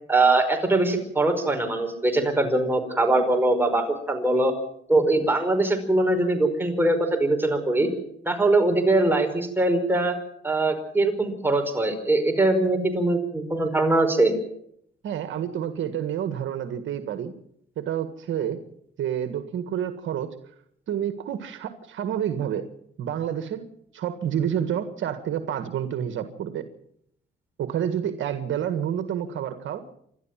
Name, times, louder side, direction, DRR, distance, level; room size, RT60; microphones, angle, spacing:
voice 1, 0.1-4.5 4.9-7.9 8.2-10.2 10.4-14.3, right 2 dB, 10° right, 4 dB, 5.0 m, -22 dB
voice 2, 15.0-17.3 17.8-18.6 19.0-20.3 20.9-22.6 23.0-23.6 23.9-26.6 27.6-29.8, right 9 dB, 75° right, 9 dB, 1.7 m, -29 dB
28.0 x 12.5 x 7.5 m, 0.71 s
cardioid pair, 90°, 20 cm